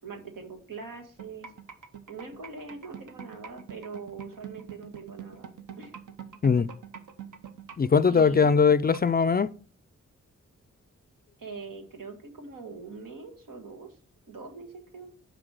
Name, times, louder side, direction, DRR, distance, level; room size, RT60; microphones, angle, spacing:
voice 1, 0.0-1.5 2.1-5.5 5.8-5.9 8.1-8.6 11.4-14.0 14.3-15.1, right 4 dB, 85° right, 1.5 m, -42 dB
sound 1, 1.2-9.1, right 8 dB, 70° right, 0.9 m, -43 dB
voice 2, 7.8-9.5, left 5 dB, 30° left, 0.4 m, -21 dB
6.0 x 4.9 x 6.4 m
cardioid pair, 45°, 32 cm